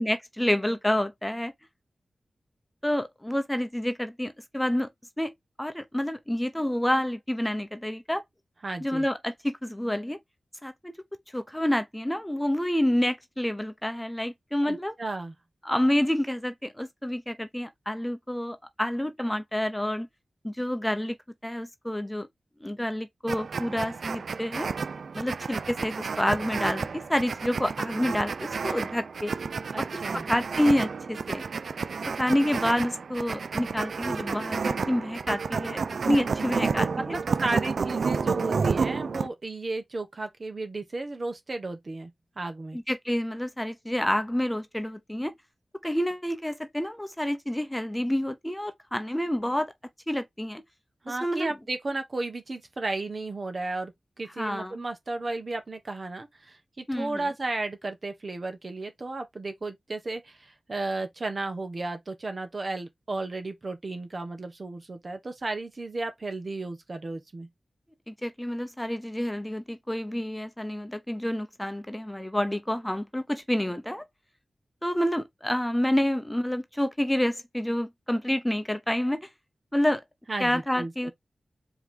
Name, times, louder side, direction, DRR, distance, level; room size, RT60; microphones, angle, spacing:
voice 1, 0.0-1.5 2.8-4.9 5.2-5.3 5.6-8.2 8.8-10.2 10.6-10.9 11.3-14.9 15.6-20.1 20.4-21.2 21.4-22.3 22.6-24.7 25.1-29.3 29.8-29.9 30.3-31.4 32.2-37.2 42.7-45.3 45.8-49.7 50.1-50.6 51.1-51.5 54.4-54.8 56.9-57.2 68.1-74.0 74.8-79.3 79.7-80.0 80.4-81.1, left 1 dB, 10° left, 0.8 m, -28 dB
voice 2, 8.6-9.1 14.6-15.3 29.7-30.3 37.1-42.1 42.4-42.8 51.0-53.9 54.2-67.5 80.3-81.1, right 2 dB, 50° right, 1.2 m, -34 dB
sound 1, 23.3-39.3, right 5 dB, 80° right, 0.4 m, -30 dB
4.7 x 3.0 x 3.7 m
cardioid pair, 45°, 0 cm